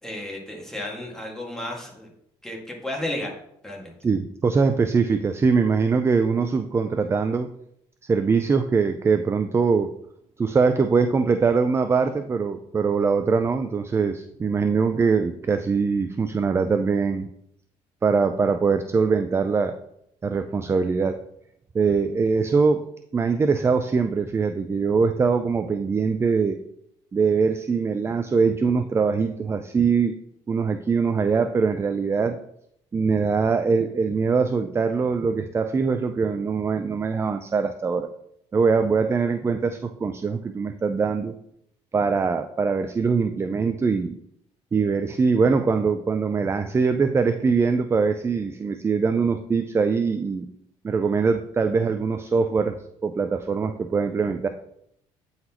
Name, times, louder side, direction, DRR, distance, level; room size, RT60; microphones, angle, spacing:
voice 1, 0.0-2.1 2.4-3.3 3.6-3.9, left 1 dB, 5° left, -1 dB, 1.8 m, -33 dB
voice 2, 4.0-7.5 8.1-9.9 10.4-17.3 18.0-19.8 20.2-21.2 21.7-22.8 23.1-26.6 27.1-30.2 30.5-32.4 32.9-38.1 38.5-41.3 41.9-44.2 44.7-50.5 50.8-54.5, right 5 dB, 20° right, 8 dB, 0.4 m, -22 dB
9.0 x 4.0 x 2.9 m, 0.72 s
cardioid pair, 95°, 12 cm